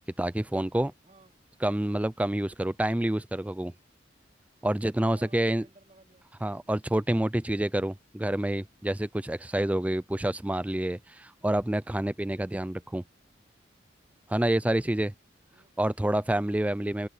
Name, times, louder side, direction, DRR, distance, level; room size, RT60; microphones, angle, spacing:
voice 1, 0.2-0.9 1.6-3.7 4.6-5.7 6.4-13.0 14.3-15.1 15.8-17.1, right 1 dB, 10° right, 0.4 m, -28 dB
voice 2, 1.0-1.3 5.1-6.3 15.4-15.7, right 2 dB, 35° right, 3.0 m, -58 dB
head